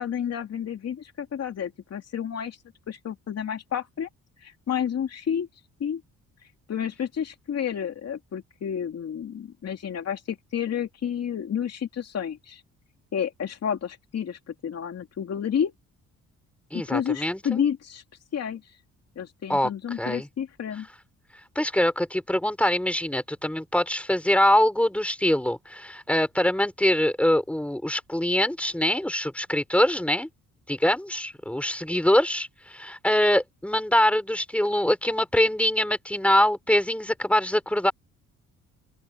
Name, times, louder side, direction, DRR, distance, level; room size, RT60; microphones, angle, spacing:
voice 1, 0.0-2.6 2.9-4.1 4.4-5.5 5.8-6.0 6.7-12.6 13.1-15.7 16.7-18.0 18.3-18.8 19.2-20.9, left 8 dB, 55° left, 2.7 m, -30 dB
voice 2, 16.7-17.6 19.5-19.7 20.0-20.3 21.5-30.3 30.7-37.9, left 1 dB, 5° left, 5.0 m, -23 dB
open air
cardioid pair, 90°, 30 cm